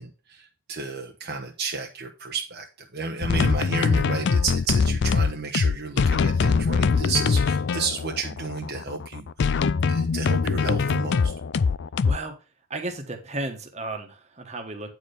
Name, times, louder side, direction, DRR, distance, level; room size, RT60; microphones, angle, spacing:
voice 1, 0.0-2.7 2.9-11.3, right 4 dB, 45° right, 2 dB, 1.0 m, -32 dB
sound 1, 3.2-12.2, left 5 dB, 50° left, 0.4 m, -23 dB
voice 2, 12.0-12.4 12.7-14.9, right 2 dB, 30° right, 4 dB, 1.4 m, -33 dB
9.3 x 4.5 x 5.0 m, 0.32 s
head